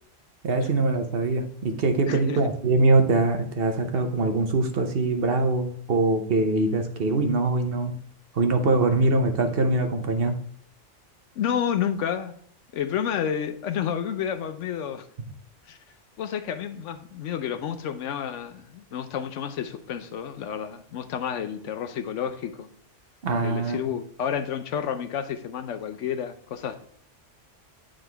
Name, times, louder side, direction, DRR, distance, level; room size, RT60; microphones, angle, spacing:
voice 1, 0.4-7.9 8.3-10.3 23.2-23.9, right 2 dB, 55° right, 6 dB, 0.9 m, -23 dB
voice 2, 2.1-2.5 11.4-12.3 12.7-15.0 15.7-15.8 16.2-22.7 23.4-26.8, left 8 dB, 80° left, 9 dB, 1.0 m, -30 dB
9.1 x 3.8 x 3.3 m, 0.63 s
omnidirectional pair, 1.2 m